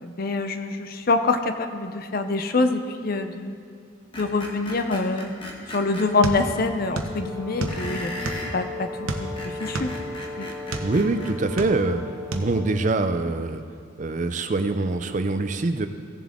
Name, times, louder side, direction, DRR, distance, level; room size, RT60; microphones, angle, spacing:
voice 1, 0.0-3.5 4.1-5.3 5.7-8.1 8.5-8.9 9.2-9.9 10.4-10.5, left 3 dB, 45° left, 7 dB, 0.5 m, -25 dB
Screech, 4.1-6.1 7.7-8.6 9.2-11.4, left 1 dB, 25° left, 1.2 m, -37 dB
sound 1, 6.2-7.2 7.4-8.6 9.0-10.9 11.4-12.0 12.3-12.5, right 2 dB, 85° right, 0.9 m, -30 dB
Brass instrument, 7.0-13.0, left 3 dB, 10° right, 1.2 m, -37 dB
voice 2, 10.8-12.0 12.3-13.6 14.0-15.9, right 3 dB, 35° right, 9 dB, 0.4 m, -24 dB
16.5 x 7.1 x 3.7 m, 2.4 s
head